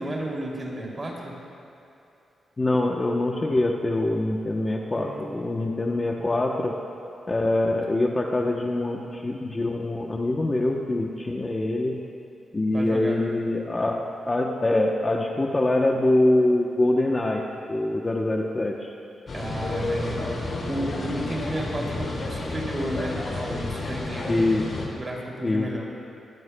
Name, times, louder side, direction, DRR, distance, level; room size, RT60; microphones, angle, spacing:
voice 1, 0.0-1.4 4.9-5.5 12.7-13.2 19.3-24.4 24.9-25.9, right 1 dB, 25° right, -3 dB, 2.7 m, -33 dB
voice 2, 2.6-6.8 7.3-12.0 12.5-17.4 17.7-18.9 24.3-24.9 25.4-25.7, left 2 dB, 20° left, 0 dB, 0.8 m, -24 dB
sound 1, 19.3-24.9, left 2 dB, 50° left, 2.4 m, -31 dB
22.5 x 14.5 x 2.2 m, 2.8 s
wide cardioid pair, 140°, 0 cm